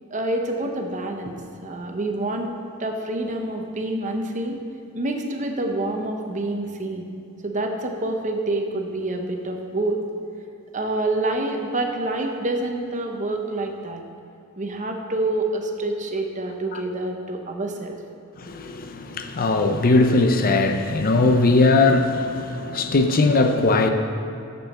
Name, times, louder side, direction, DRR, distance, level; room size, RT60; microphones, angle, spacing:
voice 1, 0.1-4.6 4.9-7.1 7.4-10.0 10.7-14.0 14.6-18.0, right 2 dB, 35° right, 3 dB, 0.9 m, -27 dB
voice 2, 18.4-23.9, left 3 dB, 45° left, 6 dB, 0.6 m, -19 dB
7.4 x 7.0 x 6.5 m, 2.7 s
head